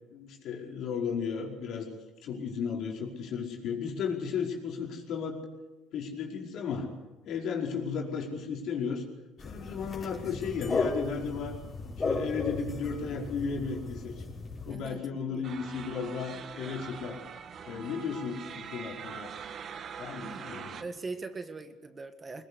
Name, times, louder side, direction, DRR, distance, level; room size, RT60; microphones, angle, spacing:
voice 1, 0.1-1.9 2.2-5.4 5.9-6.9 7.2-9.0 9.4-11.6 12.0-14.2 14.6-17.2 17.7-19.3 20.0-20.8, left 6 dB, 60° left, 0 dB, 5.0 m, -34 dB
sound 1, 9.4-14.7, left 3 dB, 30° left, 5.6 m, -35 dB
voice 2, 14.7-15.0 15.3-15.4 20.2-20.5 20.8-22.4, right 3 dB, 25° right, 9 dB, 1.8 m, -41 dB
sound 2, 15.4-20.8, right 7 dB, 50° right, 1.6 m, -43 dB
21.0 x 21.0 x 8.3 m, 1.1 s
supercardioid pair, 85°, 0 cm